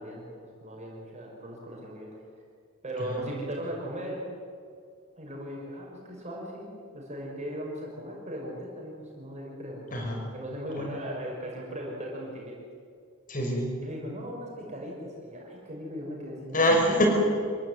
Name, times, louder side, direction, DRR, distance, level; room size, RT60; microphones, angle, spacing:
voice 1, 0.0-2.1 2.8-4.2 5.2-10.0 10.3-12.5 13.8-16.6, equal, 30° right, -2 dB, 5.8 m, -38 dB
voice 2, 9.9-10.3 10.8-10.9 13.3-13.7 16.5-17.1, left 1 dB, 40° left, 2 dB, 5.3 m, -25 dB
26.0 x 16.0 x 9.7 m, 2.2 s
head